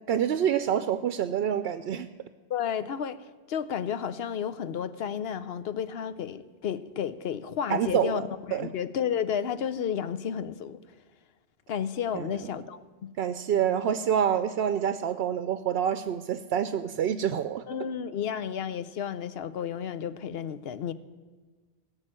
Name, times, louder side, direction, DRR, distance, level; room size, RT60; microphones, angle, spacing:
voice 1, 0.1-2.1 7.7-8.7 12.1-12.3 13.2-17.7, right 9 dB, 70° right, 0.8 m, -27 dB
voice 2, 2.5-10.8 11.7-13.1 17.7-20.9, left 8 dB, 70° left, 0.9 m, -32 dB
18.5 x 6.4 x 8.9 m
omnidirectional pair, 1.1 m